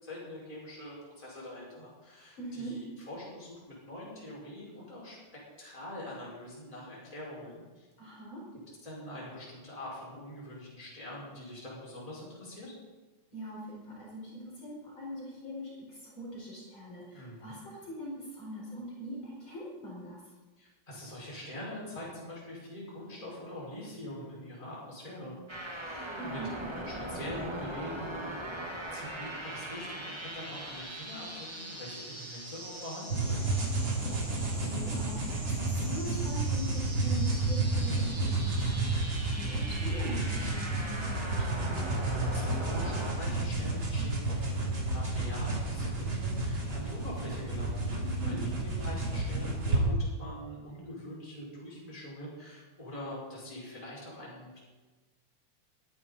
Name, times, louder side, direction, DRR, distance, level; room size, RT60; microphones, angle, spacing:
voice 1, 0.0-5.2 5.6-7.9 8.8-12.7 17.1-17.4 20.6-25.3 25.8-26.4 26.9-28.3 28.9-33.5 42.3-48.0 48.2-54.6, left 1 dB, 10° left, -6 dB, 5.1 m, -44 dB
voice 2, 2.4-2.8 8.0-8.5 13.3-20.2 26.2-26.6 34.0-41.9 48.0-48.4, equal, 40° left, -5 dB, 5.5 m, -42 dB
sound 1, 25.5-43.1, right 1 dB, 25° right, 0.6 m, -41 dB
sound 2, 33.1-49.8, right 2 dB, 40° right, 3.8 m, -31 dB
22.5 x 11.0 x 4.1 m, 1.2 s
omnidirectional pair, 3.5 m